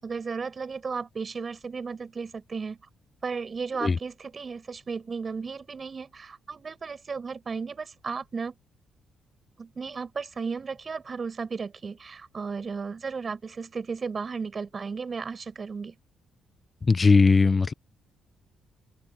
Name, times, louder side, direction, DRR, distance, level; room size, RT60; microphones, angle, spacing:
voice 1, 0.0-2.8 3.2-8.5 9.6-15.9, right 5 dB, 35° right, 7.6 m, -34 dB
voice 2, 16.9-17.7, left 4 dB, 30° left, 0.5 m, -19 dB
open air
cardioid pair, 90°, 0 cm